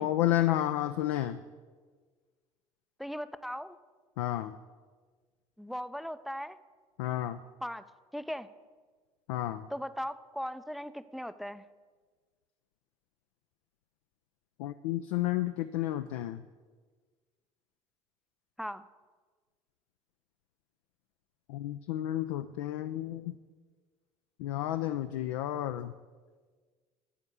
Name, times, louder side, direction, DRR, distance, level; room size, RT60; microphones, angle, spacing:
voice 1, 0.0-1.4 4.2-4.5 7.0-7.4 9.3-9.6 14.6-16.4 21.5-23.4 24.4-25.9, left 13 dB, 70° left, 10 dB, 0.4 m, -31 dB
voice 2, 3.0-3.8 5.6-6.6 7.6-7.8 8.1-8.5 9.7-11.7 18.6-18.9, equal, ahead, 13 dB, 0.4 m, -38 dB
12.5 x 4.3 x 8.2 m, 1.5 s
figure-of-eight pair, 55°, 18 cm